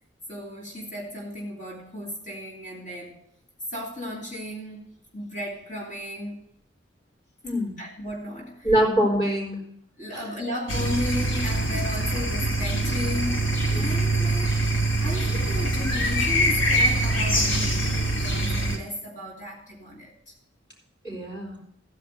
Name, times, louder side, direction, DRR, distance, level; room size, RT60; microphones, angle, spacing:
voice 1, 0.3-3.3 3.7-6.5 7.8-8.7 10.0-14.6 15.0-20.3, left 1 dB, 40° left, -4 dB, 2.7 m, -35 dB
voice 2, 7.4-7.8 8.6-9.6 10.1-10.2 13.7-14.0 21.0-21.6, equal, 25° left, -3 dB, 4.6 m, -24 dB
sound 1, 10.7-18.8, right 1 dB, 90° left, 2.8 m, -24 dB
15.0 x 5.2 x 8.0 m, 0.70 s
head